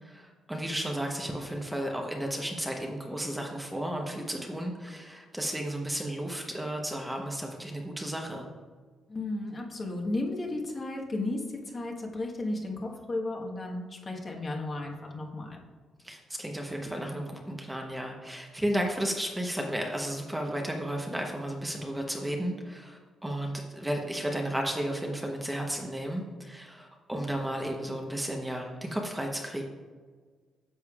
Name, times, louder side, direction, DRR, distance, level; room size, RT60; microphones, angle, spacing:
voice 1, 0.0-8.5 16.0-29.6, right 1 dB, 10° right, 1 dB, 0.9 m, -33 dB
voice 2, 9.1-15.6, left 2 dB, 35° left, 0 dB, 1.3 m, -34 dB
9.8 x 6.6 x 2.4 m, 1.5 s
cardioid pair, 90°, 0 cm